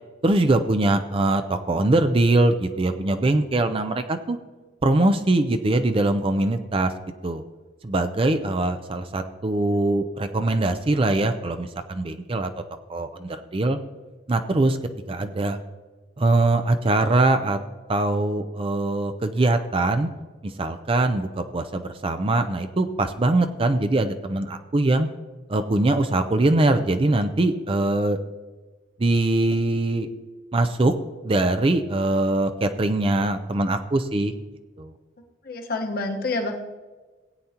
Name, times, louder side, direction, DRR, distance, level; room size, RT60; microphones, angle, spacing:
voice 1, 0.2-4.4 4.8-6.9 7.2-7.4 7.8-12.5 12.9-13.8 14.3-14.8 15.1-15.6 16.2-17.6 17.9-20.1 20.4-25.1 25.5-28.2 29.0-30.1 30.5-30.9 31.2-34.3 34.8-34.9, right 2 dB, 30° right, 8 dB, 0.5 m, -22 dB
voice 2, 35.4-36.6, left 2 dB, 50° left, 3 dB, 1.2 m, -27 dB
17.0 x 9.1 x 2.9 m, 1.3 s
head